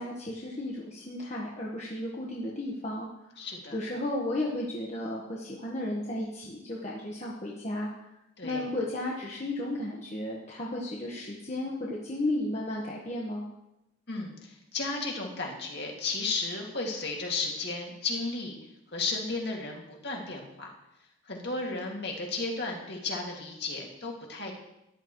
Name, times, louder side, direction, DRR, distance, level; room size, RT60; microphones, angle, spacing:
voice 1, 0.0-3.1 3.7-7.9 8.4-13.5, left 1 dB, 30° left, -3 dB, 1.4 m, -34 dB
voice 2, 3.4-3.8 8.4-8.7 14.1-18.6 18.9-20.7 21.3-24.5, left 3 dB, 50° left, 0 dB, 2.3 m, -34 dB
13.5 x 11.5 x 3.2 m, 0.88 s
head